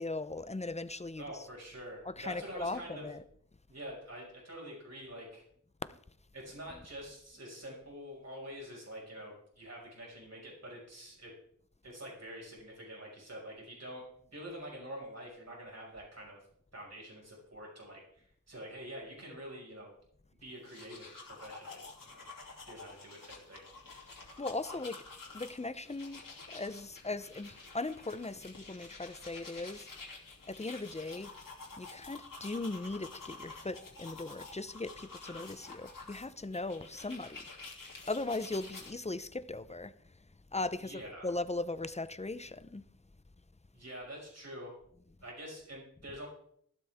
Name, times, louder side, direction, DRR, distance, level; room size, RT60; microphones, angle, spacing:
voice 1, 0.0-1.2 2.2-3.2 5.9-6.0 24.4-25.0 25.3-26.2 26.5-29.9 30.5-31.3 31.8-37.4 38.1-39.9 40.5-40.9 41.2-42.8, left 2 dB, 20° left, 0.7 m, -38 dB
voice 2, 1.2-3.1 3.7-5.4 6.3-11.3 11.8-16.4 16.7-19.9 20.4-22.2 22.7-23.6 24.7-24.8 40.8-41.4 43.7-44.8 45.2-46.3, equal, 50° right, 5.7 m, -46 dB
sound 1, 20.5-38.9, left 3 dB, 85° left, 2.8 m, -50 dB
15.5 x 12.5 x 3.6 m
wide cardioid pair, 80°, 32 cm